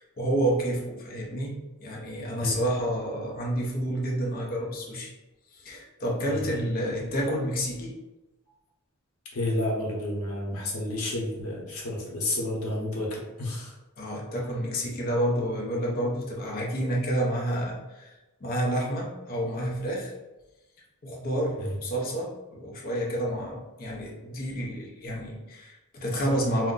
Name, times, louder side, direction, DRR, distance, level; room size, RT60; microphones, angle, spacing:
voice 1, 0.0-5.1 5.5-7.9 14.0-18.1 18.4-20.1 21.0-26.7, right 1 dB, 40° left, -2 dB, 0.6 m, -29 dB
voice 2, 9.3-13.7 21.6-21.8, left 1 dB, 80° left, -3 dB, 0.8 m, -30 dB
2.4 x 2.1 x 3.7 m, 1.0 s
head